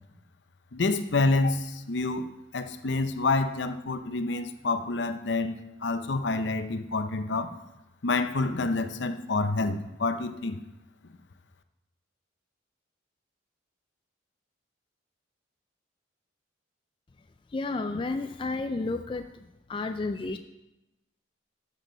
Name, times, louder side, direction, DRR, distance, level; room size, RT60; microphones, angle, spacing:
voice 1, 0.7-2.3 2.5-7.5 8.0-10.6, left 3 dB, 65° left, 10 dB, 0.7 m, -28 dB
voice 2, 17.5-19.3 19.7-20.4, left 3 dB, 25° left, 7 dB, 0.3 m, -31 dB
13.0 x 7.4 x 3.9 m, 0.97 s
head